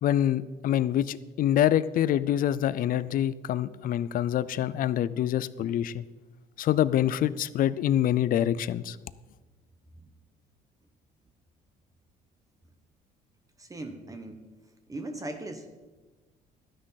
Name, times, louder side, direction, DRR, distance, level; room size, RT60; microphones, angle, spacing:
voice 1, 0.0-6.0 6.6-9.0, left 11 dB, 55° left, 17 dB, 0.5 m, -26 dB
voice 2, 13.6-14.4 14.9-15.7, right 2 dB, 20° right, 6 dB, 1.0 m, -38 dB
12.5 x 9.7 x 4.1 m, 1.3 s
cardioid pair, 110°, 17 cm